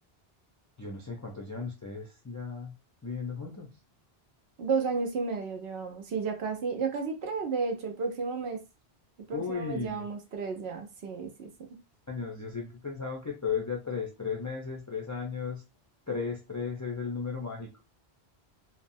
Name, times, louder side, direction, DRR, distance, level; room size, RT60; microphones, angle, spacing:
voice 1, 0.8-2.7 3.0-3.7 9.3-10.1 12.1-15.6 16.1-17.8, left 5 dB, 30° left, 0.3 m, -35 dB
voice 2, 4.6-8.6 9.3-11.8, right 4 dB, 85° right, 0.9 m, -32 dB
2.9 x 2.0 x 2.6 m
omnidirectional pair, 1.1 m